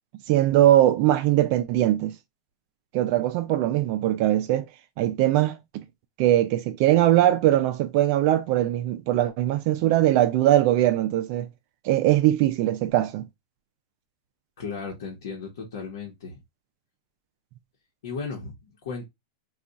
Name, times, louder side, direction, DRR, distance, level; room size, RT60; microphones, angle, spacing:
voice 1, 0.3-2.2 2.9-4.7 5.0-5.8 6.2-11.5 11.8-13.3, right 13 dB, 45° right, 0.4 m, -21 dB
voice 2, 14.6-16.4 18.0-19.1, left 5 dB, 75° left, 1.0 m, -35 dB
2.4 x 2.4 x 3.8 m
supercardioid pair, 155°, 2 cm